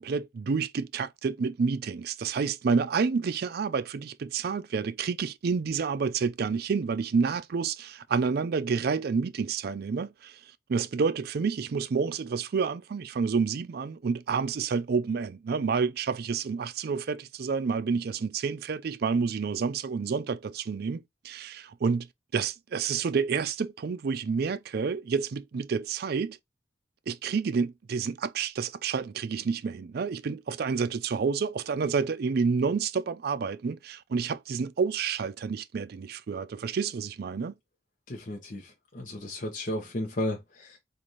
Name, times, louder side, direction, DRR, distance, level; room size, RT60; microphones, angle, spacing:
voice 1, 0.0-10.4 10.7-22.1 22.3-26.4 27.1-37.5, right 5 dB, 55° right, 0.4 m, -29 dB
voice 2, 38.1-40.8, left 1 dB, 45° left, 0.9 m, -34 dB
3.9 x 2.6 x 3.0 m
head